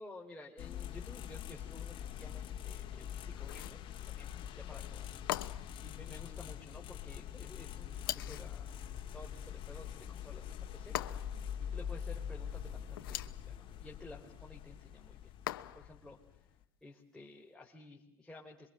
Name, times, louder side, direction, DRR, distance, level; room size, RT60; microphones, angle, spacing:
voice 1, 0.0-3.8 4.0-5.1 5.8-8.8 9.1-10.9 11.6-15.3 15.6-16.2 16.8-18.7, left 2 dB, 5° left, -3 dB, 3.7 m, -53 dB
sound 1, 0.6-16.6, left 9 dB, 50° left, 2.2 m, -44 dB
sound 2, 3.4-3.8 5.3-5.8 8.0-8.5 10.9-11.5 12.9-13.4 15.5-16.0, left 15 dB, 85° left, 1.0 m, -40 dB
27.0 x 24.0 x 7.7 m, 0.78 s
supercardioid pair, 95°, 12 cm